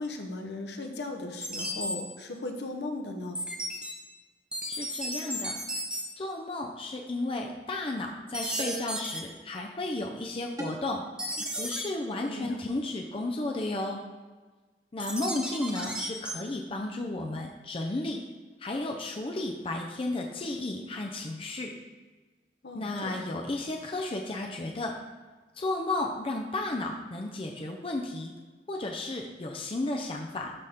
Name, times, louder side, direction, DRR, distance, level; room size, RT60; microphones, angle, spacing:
voice 1, 0.0-3.4 12.2-12.6 22.6-23.3, left 2 dB, 70° left, 4 dB, 0.9 m, -37 dB
sound 1, 1.4-2.0 3.4-3.9 4.5-6.0 8.3-9.2 11.2-11.8 15.0-16.3, right 1 dB, 5° right, 0.8 m, -34 dB
voice 2, 4.7-5.6 6.2-11.0 11.6-14.0 14.9-18.2 18.6-21.7 22.7-25.0 25.5-28.3 28.7-30.5, left 2 dB, 30° left, 1 dB, 0.6 m, -33 dB
sound 2, 7.0-7.2 8.6-9.0 10.6-11.0, right 1 dB, 20° right, 1.2 m, -39 dB
12.0 x 4.1 x 3.5 m, 1.3 s
head